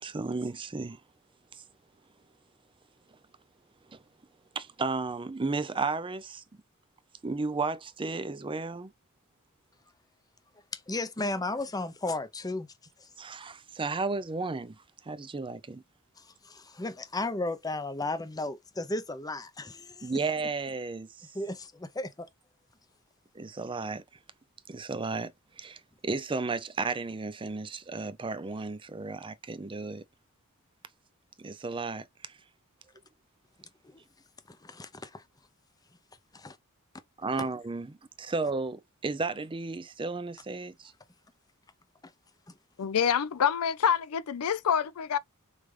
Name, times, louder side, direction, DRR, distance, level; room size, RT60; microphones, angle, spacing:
voice 1, 0.0-1.0 1.5-1.6 3.9-4.0 4.5-6.4 7.2-8.9 13.2-15.8 20.0-21.3 23.3-24.0 24.7-30.0 31.4-32.4 37.2-40.9, right 3 dB, 20° right, 0.5 m, -34 dB
voice 2, 10.7-12.7 13.0-13.1 16.2-20.1 21.3-22.3 34.5-35.2 36.3-36.6 37.4-37.5, left 2 dB, 15° left, 0.7 m, -34 dB
voice 3, 42.8-45.2, left 7 dB, 70° left, 0.5 m, -26 dB
4.8 x 3.4 x 3.2 m
head